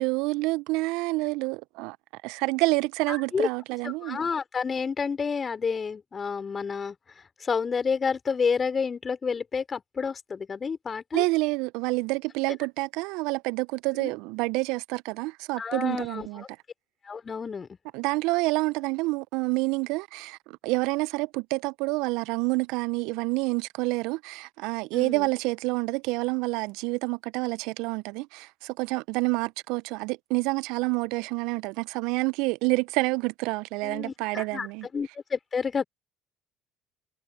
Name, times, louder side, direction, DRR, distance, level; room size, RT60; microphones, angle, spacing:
voice 1, 0.0-2.0 2.2-4.2 11.1-16.4 17.9-34.9, right 25 dB, 65° right, 1.2 m, -28 dB
voice 2, 3.1-3.5 4.0-6.9 7.4-11.2 14.0-14.1 15.6-16.5 17.0-17.7 24.9-25.3 33.8-34.7 34.9-35.8, left 5 dB, 35° left, 4.9 m, -29 dB
hypercardioid pair, 55°, 0 cm